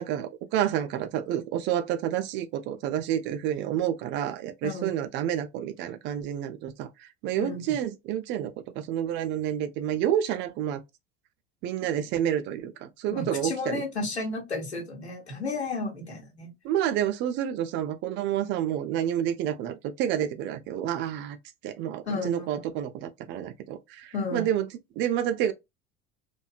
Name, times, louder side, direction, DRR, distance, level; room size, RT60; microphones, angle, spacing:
voice 1, 0.0-10.8 11.6-13.8 16.6-21.4 21.6-24.7 25.0-25.5, right 10 dB, 35° right, 0.4 m, -29 dB
voice 2, 7.4-7.8 13.1-16.5 22.1-22.6 24.1-24.5, left 3 dB, 85° left, 0.9 m, -32 dB
2.7 x 2.2 x 2.3 m
figure-of-eight pair, 65°, 32 cm